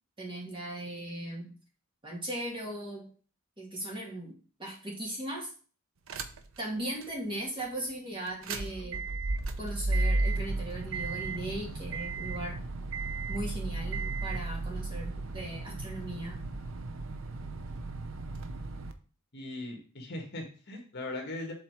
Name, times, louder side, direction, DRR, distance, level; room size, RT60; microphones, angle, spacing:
voice 1, 0.2-1.6 2.0-3.1 3.6-5.5 6.6-9.0 9.6-12.6 13.3-16.4, right 1 dB, 25° right, -3 dB, 2.3 m, -38 dB
sound 1, 6.1-6.6 7.0-7.1 8.3-18.9, right 2 dB, 70° right, 0.7 m, -34 dB
voice 2, 19.3-21.5, left 2 dB, 55° left, 1 dB, 1.8 m, -39 dB
7.4 x 4.1 x 4.7 m, 0.40 s
head